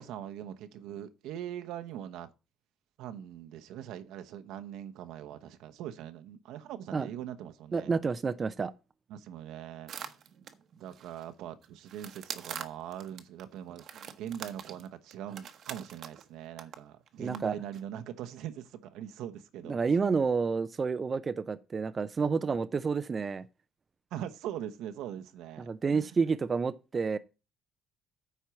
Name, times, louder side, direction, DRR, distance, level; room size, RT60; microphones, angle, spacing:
voice 1, 0.0-2.3 3.0-7.9 9.1-9.9 10.8-19.8 24.1-26.2, right 10 dB, 80° right, 0.9 m, -42 dB
voice 2, 7.7-8.7 17.2-17.5 19.7-23.4 25.6-27.2, right 5 dB, 25° right, 0.4 m, -29 dB
sound 1, 9.9-11.2 11.6-13.4 13.8-16.3 16.6-16.8 17.1-17.4 17.7-17.8, right 8 dB, 45° right, 0.9 m, -43 dB
9.5 x 4.5 x 6.9 m
cardioid pair, 165°, 0 cm